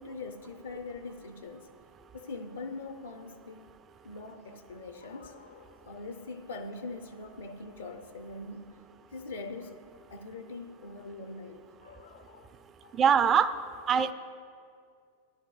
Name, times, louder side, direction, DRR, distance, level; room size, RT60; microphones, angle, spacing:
voice 1, 0.0-1.7 2.1-3.7 4.0-8.8 9.1-9.8 10.1-13.0, left 3 dB, 70° left, 6 dB, 0.5 m, -43 dB
voice 2, 13.0-13.5 13.9-14.1, right 7 dB, 25° right, 11 dB, 0.4 m, -22 dB
17.5 x 10.5 x 2.3 m, 2.3 s
figure-of-eight pair, 90°, 0 cm